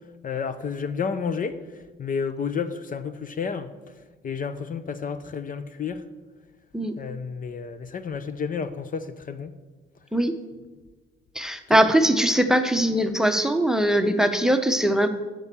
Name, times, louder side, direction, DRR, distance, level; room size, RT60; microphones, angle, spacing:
voice 1, 0.2-3.7 4.2-6.0 7.0-9.5 11.7-11.8, left 6 dB, 45° left, 12 dB, 0.6 m, -31 dB
voice 2, 11.3-15.1, right 1 dB, 5° right, 9 dB, 0.8 m, -21 dB
9.6 x 6.1 x 6.9 m, 1.3 s
cardioid pair, 90°, 20 cm